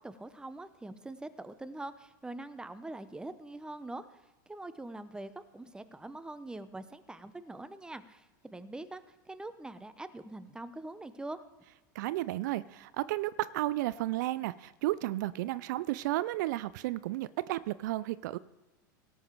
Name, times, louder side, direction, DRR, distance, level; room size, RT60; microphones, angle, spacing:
voice 1, 0.0-4.1 4.5-11.4, right 2 dB, 5° right, 13 dB, 0.8 m, -43 dB
voice 2, 11.9-18.4, right 16 dB, 65° right, 18 dB, 0.4 m, -33 dB
17.5 x 7.1 x 4.6 m, 1.1 s
hypercardioid pair, 90°, 11 cm